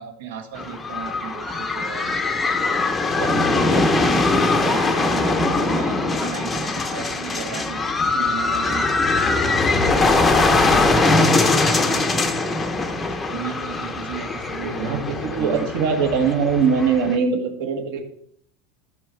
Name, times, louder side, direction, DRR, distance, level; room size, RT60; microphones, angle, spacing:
voice 1, 0.0-2.1 2.4-9.2 9.7-12.3 13.3-15.7, right 7 dB, 75° right, 7 dB, 1.6 m, -35 dB
sound 1, 0.6-17.2, left 3 dB, 10° left, 0.7 m, -21 dB
voice 2, 14.6-18.0, right 6 dB, 55° right, 5 dB, 1.8 m, -22 dB
13.5 x 5.7 x 4.6 m, 0.68 s
supercardioid pair, 175°, 0 cm